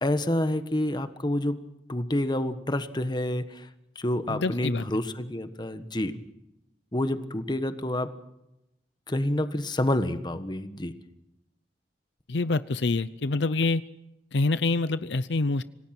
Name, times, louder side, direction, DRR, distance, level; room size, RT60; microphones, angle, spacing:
voice 1, 0.0-1.6 1.9-3.7 3.9-6.2 6.9-8.1 9.1-10.9, left 1 dB, 25° left, 10 dB, 1.4 m, -28 dB
voice 2, 4.3-4.8 12.3-13.8 14.3-15.6, left 3 dB, 80° left, 15 dB, 0.7 m, -26 dB
27.0 x 18.5 x 6.1 m, 0.88 s
head